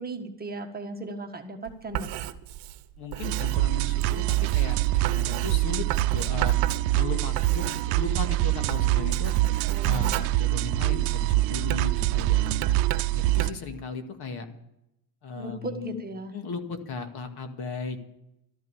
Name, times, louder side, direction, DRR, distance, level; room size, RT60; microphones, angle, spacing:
voice 1, 0.0-2.1 9.3-10.2 15.4-16.3, right 2 dB, 20° right, 4 dB, 1.5 m, -37 dB
Writing, 1.7-8.3 8.6-11.1 11.6-13.7, right 13 dB, 55° right, 1.1 m, -34 dB
voice 2, 3.0-6.5 6.9-9.3 9.8-12.7 13.1-14.5 15.2-16.0 16.3-18.0, left 4 dB, 50° left, 6 dB, 2.1 m, -36 dB
sound 1, 3.2-13.5, right 17 dB, 75° right, 0.8 m, -25 dB
13.0 x 11.0 x 7.2 m, 0.84 s
supercardioid pair, 115°, 49 cm